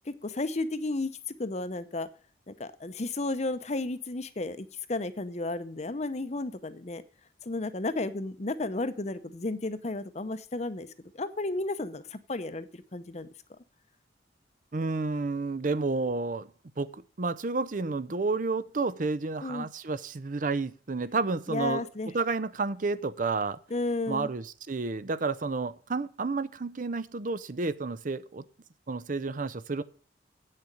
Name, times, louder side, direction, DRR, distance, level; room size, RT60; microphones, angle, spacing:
voice 1, 0.1-1.1 1.4-2.1 2.5-7.0 7.4-10.9 11.1-13.3 19.4-19.7 21.5-22.1 23.7-24.3, left 2 dB, 40° left, 0.7 m, -33 dB
voice 2, 14.7-16.5 16.8-21.9 22.1-23.6 24.1-28.4 28.9-29.8, right 3 dB, 45° right, 0.6 m, -31 dB
8.5 x 6.6 x 7.3 m
head